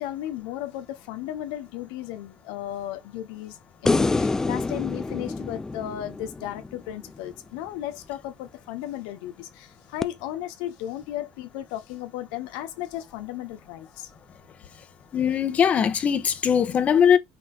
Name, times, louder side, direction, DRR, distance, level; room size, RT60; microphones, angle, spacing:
voice 1, 0.0-14.1, left 13 dB, 75° left, 1.1 m, -35 dB
sound 1, 3.8-7.2 10.0-10.1, left 3 dB, 15° left, 0.5 m, -27 dB
voice 2, 15.1-17.2, left 8 dB, 35° left, 1.4 m, -20 dB
5.9 x 4.1 x 5.5 m
supercardioid pair, 95°, 4 cm